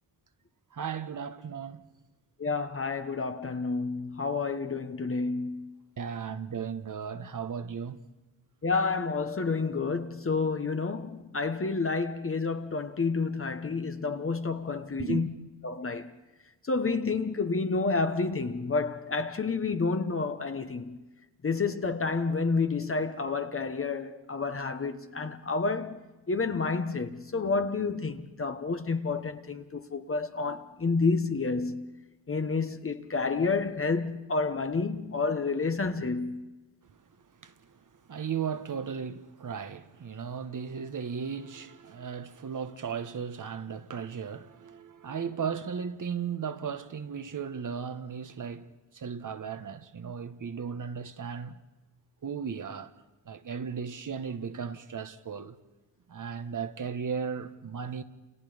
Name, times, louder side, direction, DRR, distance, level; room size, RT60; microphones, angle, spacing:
voice 1, 0.7-1.8 6.0-8.0 15.0-15.2 37.4-37.5 38.1-48.7 48.9-51.6 52.2-52.9 53.3-55.6 56.1-58.0, right 6 dB, 45° right, 1.5 m, -36 dB
voice 2, 2.4-5.7 8.6-15.3 15.6-16.1 16.7-21.0 21.4-26.0 26.3-31.9 32.3-36.4, left 4 dB, 30° left, 1.4 m, -29 dB
29.5 x 29.0 x 5.2 m
cardioid pair, 85°, 43 cm